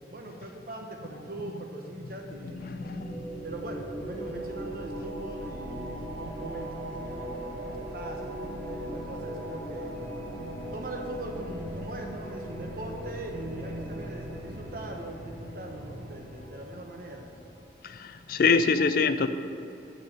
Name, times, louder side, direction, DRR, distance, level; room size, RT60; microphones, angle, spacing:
voice 1, 0.1-2.6 3.4-9.9 10.7-17.3, right 1 dB, 55° right, 2 dB, 1.0 m, -41 dB
sound 1, 2.1-17.5, right 1 dB, 5° left, 2.3 m, -38 dB
voice 2, 2.6-3.2 17.8-19.3, left 4 dB, 55° left, 11 dB, 0.4 m, -25 dB
6.7 x 6.6 x 7.6 m, 2.8 s
head